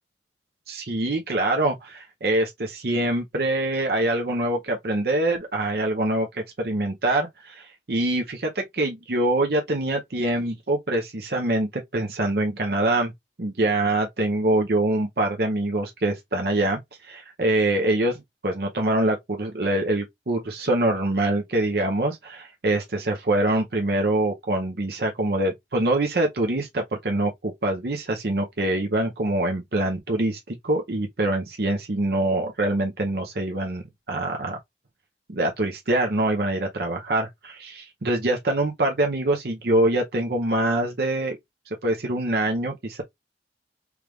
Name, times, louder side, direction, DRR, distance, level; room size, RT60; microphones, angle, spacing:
voice 1, 0.7-13.1 13.4-34.6 35.3-41.4 41.8-43.0, right 1 dB, 60° right, 0.7 m, -24 dB
4.6 x 2.5 x 3.4 m
head